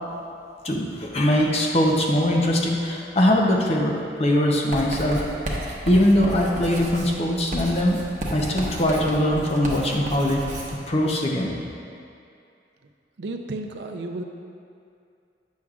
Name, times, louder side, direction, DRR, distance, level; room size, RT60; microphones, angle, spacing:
voice 1, 0.6-3.9 4.2-5.2 5.9-8.0 8.3-10.4 10.9-11.5, left 1 dB, 35° left, -1 dB, 0.6 m, -21 dB
Writing, 4.7-10.8, right 1 dB, 40° right, 0.8 m, -32 dB
voice 2, 13.2-14.2, right 2 dB, 70° right, 4 dB, 0.5 m, -32 dB
8.1 x 6.3 x 2.4 m, 2.5 s
head